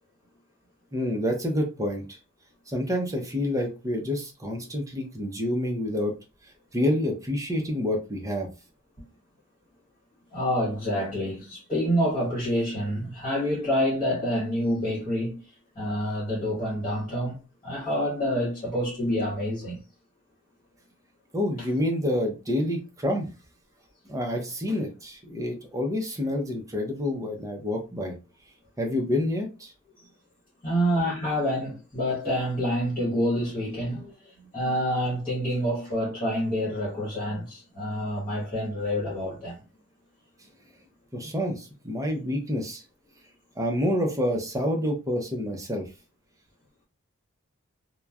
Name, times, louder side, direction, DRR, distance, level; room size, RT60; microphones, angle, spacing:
voice 1, 0.9-2.1 2.7-6.1 6.7-8.5 21.3-23.3 24.1-28.1 28.8-29.7 41.1-42.8 43.6-45.9, left 1 dB, 15° right, 0.6 m, -28 dB
voice 2, 10.3-15.4 15.7-19.8 30.6-39.6, equal, 25° left, 1.2 m, -27 dB
2.9 x 2.1 x 2.3 m
head